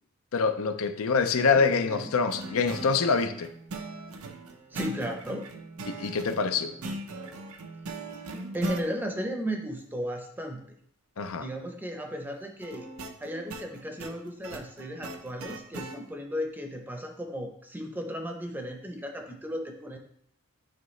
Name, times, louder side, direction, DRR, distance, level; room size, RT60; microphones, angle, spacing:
voice 1, 0.3-3.5 5.9-6.7 11.2-11.5, left 5 dB, 75° left, 8 dB, 0.5 m, -25 dB
voice 2, 1.4-2.1 4.7-5.4 8.5-10.8 11.4-12.9 13.2-20.0, equal, 10° right, 3 dB, 0.6 m, -35 dB
sound 1, 2.3-8.9 12.6-16.0, right 2 dB, 85° right, 0.7 m, -40 dB
8.6 x 3.8 x 3.2 m, 0.68 s
head